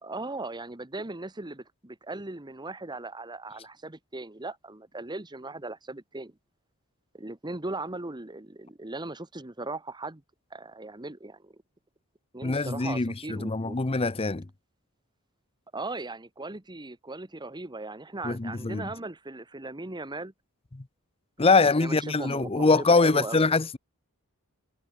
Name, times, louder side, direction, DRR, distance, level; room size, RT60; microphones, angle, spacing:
voice 1, 0.0-6.3 7.1-10.2 10.5-11.5 12.3-13.8 15.7-20.3 21.5-23.5, right 2 dB, 20° right, 1.3 m, -38 dB
voice 2, 12.4-14.4 18.2-18.9 21.4-23.8, left 3 dB, 25° left, 0.7 m, -23 dB
head